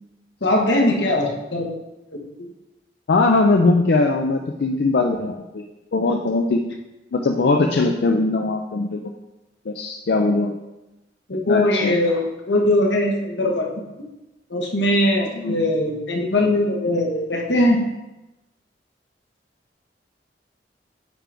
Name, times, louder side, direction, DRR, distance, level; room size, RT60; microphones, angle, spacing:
voice 1, 0.4-1.8 2.1-2.2 11.3-13.7 14.5-17.8, left 1 dB, 85° left, 1 dB, 1.1 m, -20 dB
voice 2, 3.1-5.7 5.9-6.6 7.1-9.1 9.7-10.6 11.5-12.0 15.3-15.6, left 3 dB, 65° left, 3 dB, 0.4 m, -20 dB
9.2 x 3.4 x 3.8 m, 1.0 s
head